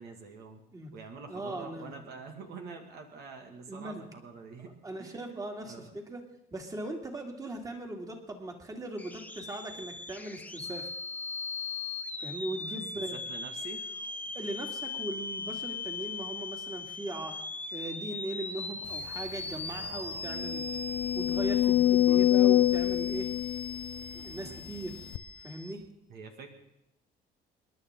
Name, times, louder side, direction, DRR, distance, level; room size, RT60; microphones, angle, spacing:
voice 1, 0.0-0.6 0.9-5.9 13.1-13.8 19.7-20.2 21.6-22.3 26.1-26.5, right 4 dB, 70° right, 3 dB, 2.2 m, -46 dB
voice 2, 1.3-1.9 3.7-4.0 4.8-6.2 6.5-10.9 12.2-13.2 14.3-17.4 17.7-20.6 21.1-23.3 24.1-25.1 25.4-25.8, right 1 dB, 20° right, 2 dB, 2.7 m, -39 dB
sound 1, 9.0-25.7, left 4 dB, 10° left, 0.9 m, -39 dB
sound 2, 19.1-19.2 19.6-19.7 20.2-24.5 25.1-25.2, left 13 dB, 75° left, 0.7 m, -26 dB
27.5 x 11.0 x 3.8 m, 0.85 s
cardioid pair, 110°, 17 cm